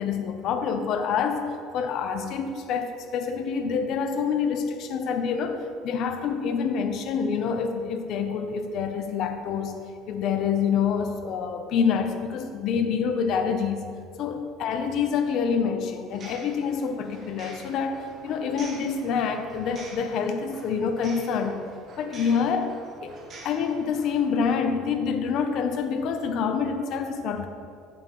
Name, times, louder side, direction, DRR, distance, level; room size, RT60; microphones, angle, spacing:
voice 1, 0.0-1.4 1.7-9.8 10.1-13.8 14.2-18.0 18.2-21.6 22.0-22.7 23.0-23.2 23.4-27.5, left 6 dB, 50° left, 6 dB, 0.6 m, -27 dB
sound 1, 16.1-24.2, right 2 dB, 35° right, 1.1 m, -46 dB
8.6 x 7.1 x 3.1 m, 2.4 s
cardioid pair, 145°, 0 cm